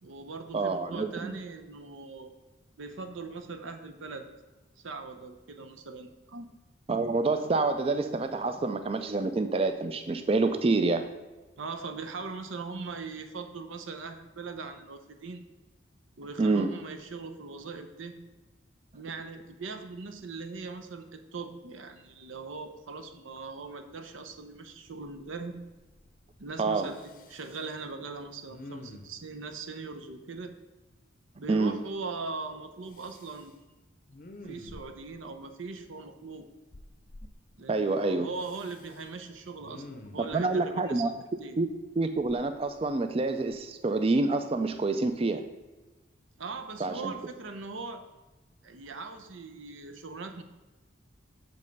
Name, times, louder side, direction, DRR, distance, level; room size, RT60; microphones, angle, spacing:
voice 1, 0.0-2.3 2.8-4.3 4.8-6.5 11.6-15.4 16.2-18.1 18.9-25.5 26.4-30.5 31.3-33.6 34.4-36.4 37.6-41.1 41.4-41.6 46.4-48.0 48.6-50.4, right 4 dB, 90° right, 7 dB, 0.7 m, -40 dB
voice 2, 0.5-1.3 6.9-11.1 16.4-16.7 26.6-26.9 31.5-31.8 37.7-38.3 40.2-41.1 41.6-45.4 46.8-47.1, right 3 dB, 30° right, 9 dB, 0.3 m, -27 dB
Respiratory sounds, 24.3-24.4 24.9-25.4 25.7-26.4 26.8-27.8 28.5-29.3 32.9-33.5 34.1-35.2 36.7-37.3 38.4-39.1 39.6-40.3 42.2-43.1 43.5-43.7, left 2 dB, 45° left, 0.6 m, -49 dB
6.4 x 5.3 x 5.3 m, 1.2 s
head